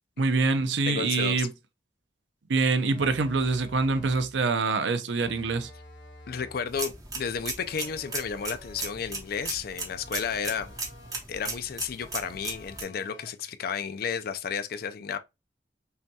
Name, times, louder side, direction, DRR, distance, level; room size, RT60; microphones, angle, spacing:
voice 1, 0.2-1.5 2.5-5.7, right 4 dB, 85° right, 0.6 m, -25 dB
voice 2, 0.9-1.5 6.3-10.7 11.3-15.2, left 6 dB, 55° left, 0.4 m, -32 dB
sound 1, 2.9-4.4 5.2-6.7 7.6-9.1 9.9-11.3 12.0-13.5, left 1 dB, 80° left, 1.4 m, -50 dB
sound 2, 6.7-12.8, right 3 dB, 20° right, 0.9 m, -37 dB
5.5 x 2.3 x 2.7 m
head